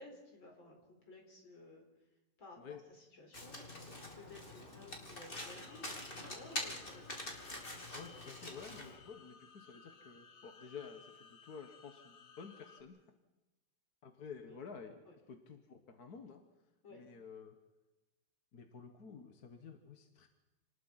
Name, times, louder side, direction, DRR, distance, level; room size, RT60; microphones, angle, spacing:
voice 1, 0.0-1.8 2.4-7.3 14.5-14.6 15.1-15.2 16.8-17.1, left 2 dB, 65° left, 2 dB, 5.2 m, -56 dB
Domestic sounds home sounds, 3.3-9.0, left 1 dB, 25° left, 3.1 m, -45 dB
sound 1, 5.4-12.8, left 5 dB, 90° left, 2.6 m, -60 dB
voice 2, 7.9-13.1 14.0-16.4 16.9-17.6 18.5-20.3, left 6 dB, 50° left, 6 dB, 1.8 m, -51 dB
27.5 x 19.5 x 5.8 m, 1.0 s
omnidirectional pair, 2.2 m